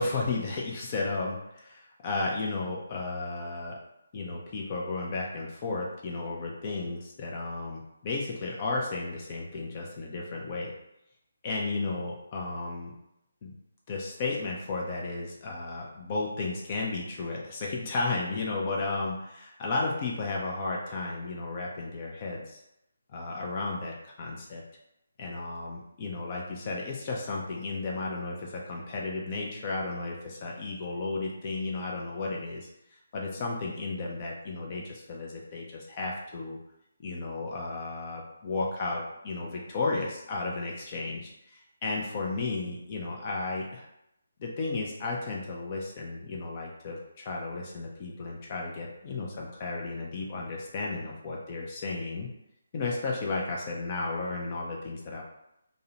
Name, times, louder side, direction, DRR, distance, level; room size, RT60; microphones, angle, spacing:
voice 1, 0.0-3.8 4.1-10.7 11.4-12.9 13.4-13.6 13.9-22.6 23.1-24.6 25.2-32.7 33.1-36.6 37.0-43.9 44.4-52.3 52.7-55.2, left 3 dB, 35° left, -2 dB, 0.4 m, -33 dB
2.6 x 2.1 x 2.7 m, 0.83 s
figure-of-eight pair, 150°, 0 cm